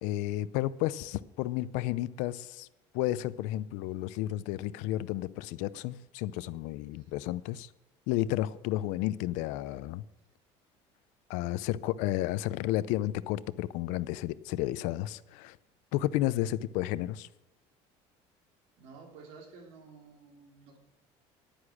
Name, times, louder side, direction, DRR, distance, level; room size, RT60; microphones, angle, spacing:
voice 1, 0.0-2.7 2.9-7.7 8.1-10.0 11.3-15.6 15.9-17.3, left 15 dB, 80° left, 0.5 m, -32 dB
voice 2, 18.8-20.8, right 4 dB, 80° right, 3.1 m, -52 dB
10.5 x 9.7 x 6.3 m
cardioid pair, 160°, 13 cm